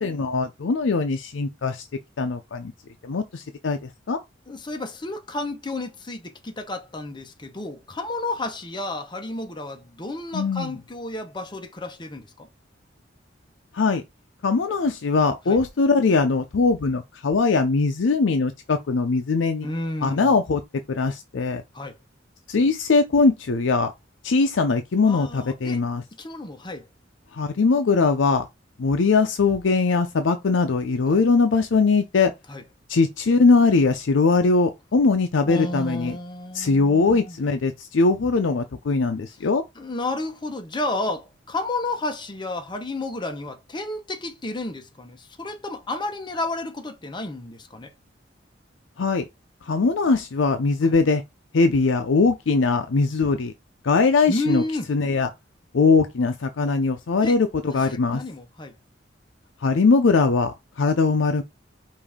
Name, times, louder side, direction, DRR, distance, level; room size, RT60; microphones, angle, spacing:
voice 1, 0.0-1.9 2.2-2.7 3.0-4.2 10.3-10.7 13.7-14.0 14.4-19.7 20.0-20.6 20.9-21.6 22.5-23.9 24.2-26.0 27.3-28.4 28.8-32.3 32.9-36.2 36.5-39.6 49.0-49.2 49.6-51.2 51.5-53.5 53.8-54.6 54.9-55.3 55.7-58.2 59.6-61.4, left 4 dB, 80° left, 0.5 m, -21 dB
voice 2, 4.5-12.5 15.5-15.6 19.6-20.4 21.7-22.0 25.0-25.8 26.2-26.9 31.1-31.2 32.5-32.6 35.4-37.4 39.8-47.9 50.8-51.0 54.3-54.9 57.2-57.4 57.6-58.7, left 2 dB, 25° left, 0.8 m, -31 dB
5.2 x 2.6 x 3.6 m
head